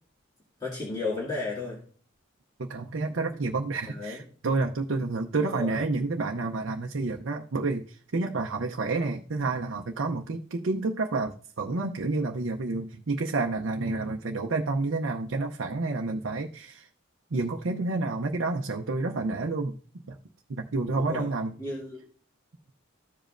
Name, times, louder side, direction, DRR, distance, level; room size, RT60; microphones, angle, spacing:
voice 1, 0.6-1.8 3.9-4.2 5.4-5.8 13.9-14.1 20.9-21.3 21.6-22.1, left 3 dB, 20° left, -6 dB, 2.2 m, -34 dB
voice 2, 2.6-16.9 17.3-19.8 20.1-20.2 20.5-21.6, right 3 dB, 75° right, 2 dB, 0.6 m, -29 dB
15.0 x 5.2 x 2.5 m, 0.43 s
head